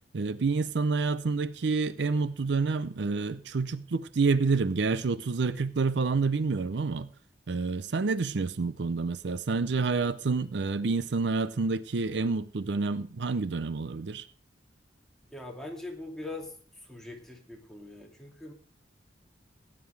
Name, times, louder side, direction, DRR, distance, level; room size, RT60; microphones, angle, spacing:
voice 1, 0.1-7.1 7.5-14.3, right 4 dB, 65° right, 0.5 m, -28 dB
voice 2, 15.3-16.5 16.9-18.5, left 2 dB, ahead, 2.5 m, -41 dB
17.5 x 9.9 x 3.3 m
head